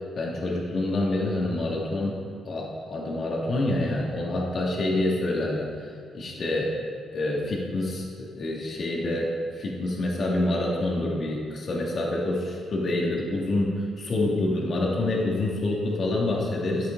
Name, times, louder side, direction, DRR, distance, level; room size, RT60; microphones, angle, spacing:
voice 1, 0.1-2.2 2.4-5.9 6.1-6.7 7.1-16.9, left 2 dB, 45° left, -3 dB, 2.7 m, -27 dB
13.5 x 10.5 x 4.1 m, 2.3 s
cardioid pair, 140°, 0 cm